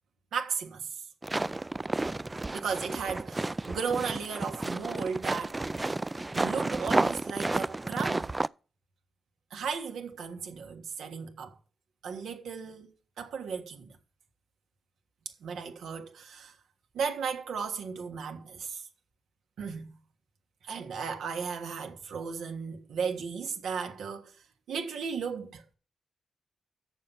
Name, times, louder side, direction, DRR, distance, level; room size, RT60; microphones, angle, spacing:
voice 1, 0.3-0.9 2.5-5.6 6.3-8.4 9.5-11.5 12.0-13.9 15.4-16.5 16.9-18.9 19.6-19.9 20.6-24.3 24.7-25.7, right 6 dB, 90° right, 1.5 m, -35 dB
sound 1, 1.2-8.5, right 2 dB, 25° right, 0.3 m, -31 dB
7.4 x 6.8 x 5.6 m
supercardioid pair, 50°, 0 cm